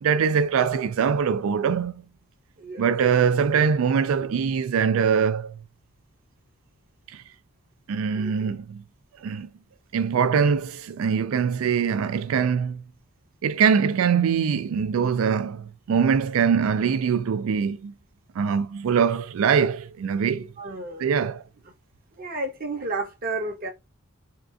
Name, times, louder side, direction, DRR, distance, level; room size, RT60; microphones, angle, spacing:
voice 1, 0.0-2.0 2.8-5.6 7.1-7.2 7.9-8.8 9.2-9.5 9.9-12.8 13.4-17.9 18.4-20.5 21.0-21.4, right 6 dB, 75° right, 0.3 m, -23 dB
voice 2, 8.1-8.6 20.6-21.3 22.1-23.7, right 2 dB, 40° right, 0.7 m, -32 dB
3.7 x 2.3 x 2.4 m
head